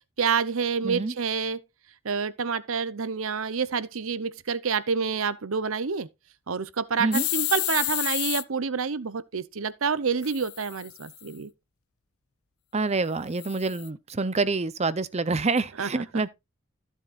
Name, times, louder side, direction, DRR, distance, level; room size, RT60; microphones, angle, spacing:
voice 1, 0.2-1.6 2.0-6.1 6.5-11.5 15.8-15.9, right 5 dB, 75° right, 0.8 m, -28 dB
voice 2, 0.8-1.1 7.0-7.3 12.7-16.3, right 3 dB, 30° right, 0.7 m, -27 dB
sound 1, 7.1-8.4 10.2-11.3 13.4-13.9, left 19 dB, 85° left, 0.5 m, -30 dB
15.0 x 7.4 x 2.5 m
head